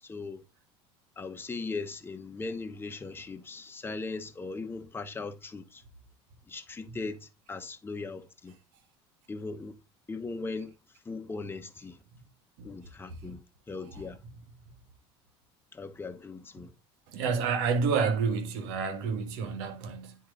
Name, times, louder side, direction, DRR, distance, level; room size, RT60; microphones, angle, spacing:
voice 1, 0.0-0.4 1.2-5.8 6.5-8.6 9.3-9.8 10.1-10.7 11.0-12.0 12.6-14.2 15.7-16.7, left 3 dB, 15° left, 1.0 m, -39 dB
voice 2, 17.1-20.2, right 5 dB, 80° right, 1.7 m, -29 dB
9.9 x 4.6 x 3.9 m
supercardioid pair, 105°, 13 cm